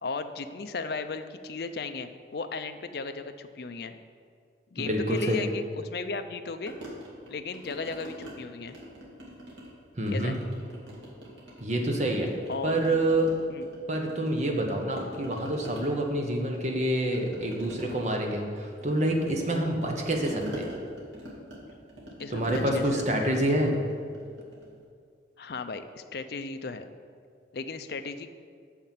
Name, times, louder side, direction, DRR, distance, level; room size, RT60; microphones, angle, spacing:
voice 1, 0.0-4.0 4.7-6.7 7.3-8.8 10.1-10.4 12.5-12.8 13.5-13.7 22.2-23.4 25.4-26.9 27.5-28.3, left 4 dB, 55° left, 8 dB, 0.5 m, -35 dB
voice 2, 4.8-5.4 9.9-10.3 11.6-12.3 12.6-13.4 13.9-20.7 22.3-23.8, right 1 dB, 40° right, 2 dB, 1.0 m, -27 dB
sound 1, 6.7-8.3 8.7-9.8 10.1-11.9 12.2-14.6 14.9-24.7, right 1 dB, 85° right, 2.2 m, -43 dB
6.6 x 5.7 x 7.4 m, 2.2 s
head